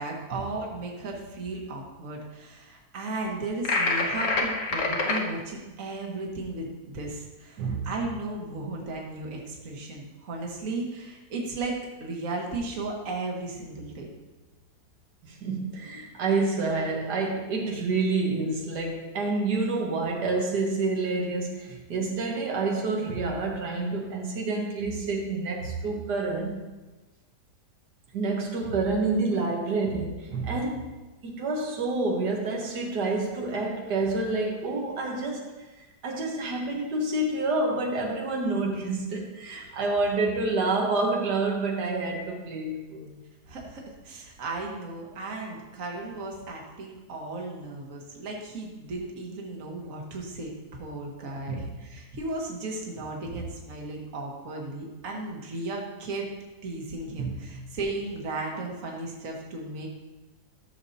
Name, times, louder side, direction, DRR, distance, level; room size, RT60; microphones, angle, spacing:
voice 1, 0.0-6.7 6.9-14.1 43.5-56.3 56.6-59.9, right 2 dB, 55° right, 0 dB, 1.7 m, -35 dB
sound 1, 3.6-5.2, left 3 dB, 55° left, 1.3 m, -26 dB
voice 2, 7.6-7.9 15.2-26.6 28.1-30.9 31.2-35.5 36.0-43.2 51.5-51.6 57.2-57.6, right 3 dB, 85° right, 0 dB, 1.8 m, -28 dB
13.0 x 6.8 x 2.8 m, 1.1 s
omnidirectional pair, 1.7 m